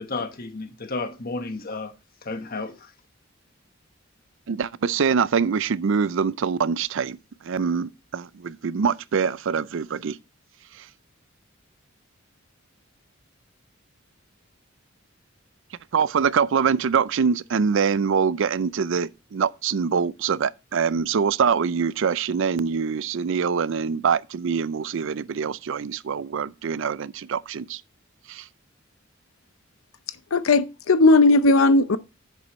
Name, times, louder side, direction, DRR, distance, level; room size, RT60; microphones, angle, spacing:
voice 1, 0.0-1.9 2.2-2.9, left 3 dB, 45° left, 1.3 m, -32 dB
voice 2, 4.5-7.2 7.4-10.2 10.8-10.9 15.9-27.8 28.3-28.4, right 6 dB, 65° right, 0.4 m, -24 dB
voice 3, 30.3-32.0, left 2 dB, 90° left, 0.7 m, -17 dB
10.5 x 8.2 x 3.1 m
head